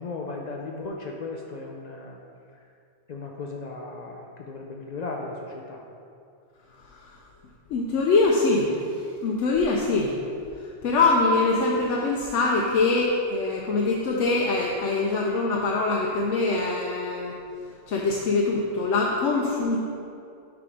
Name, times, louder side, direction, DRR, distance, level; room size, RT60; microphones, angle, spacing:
voice 1, 0.0-2.2 3.1-5.9, left 3 dB, 65° left, 0 dB, 0.4 m, -36 dB
voice 2, 7.7-8.8 9.2-10.1 10.8-17.3 17.9-19.8, left 3 dB, 85° left, -1 dB, 0.9 m, -23 dB
6.9 x 3.4 x 5.1 m, 2.5 s
omnidirectional pair, 1.2 m